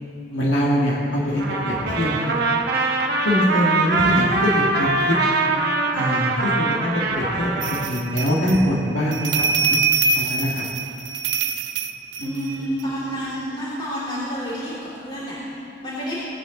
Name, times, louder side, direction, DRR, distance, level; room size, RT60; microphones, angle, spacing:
voice 1, 0.3-2.3 3.2-5.2 5.9-9.8 10.1-10.6 12.2-12.6, equal, 80° left, -4 dB, 1.9 m, -23 dB
Trumpet, 1.4-7.9, right 3 dB, 55° right, 1.3 m, -22 dB
sound 1, 7.6-12.8, right 5 dB, 80° right, 0.6 m, -24 dB
voice 2, 12.2-16.2, equal, 35° left, -11 dB, 3.4 m, -29 dB
20.0 x 8.9 x 3.9 m, 2.6 s
head